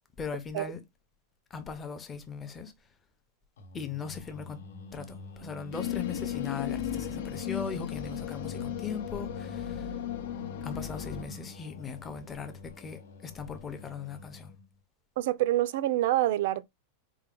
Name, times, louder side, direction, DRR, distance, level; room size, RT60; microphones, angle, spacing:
voice 1, 0.2-0.8 1.5-2.7 3.7-4.6 4.9-10.0 10.6-14.5, left 5 dB, 15° left, 0.6 m, -39 dB
Singing, 3.6-14.7, left 2 dB, 90° left, 1.3 m, -46 dB
sound 1, 5.7-11.2, left 11 dB, 65° left, 0.6 m, -35 dB
voice 2, 15.2-16.6, right 14 dB, 60° right, 0.4 m, -26 dB
4.5 x 2.1 x 3.7 m
supercardioid pair, 165°, 0 cm